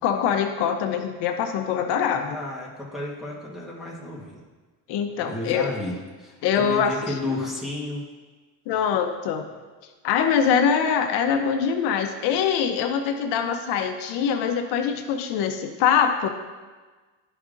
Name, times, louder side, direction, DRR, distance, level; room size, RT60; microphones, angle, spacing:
voice 1, 0.0-2.4 4.9-5.7 6.4-6.9 8.7-9.4 10.0-16.3, left 7 dB, 75° left, 6 dB, 0.7 m, -23 dB
voice 2, 2.3-4.4 5.2-8.0, left 2 dB, ahead, -5 dB, 1.2 m, -32 dB
11.5 x 5.0 x 2.5 m, 1.3 s
cardioid pair, 145°, 41 cm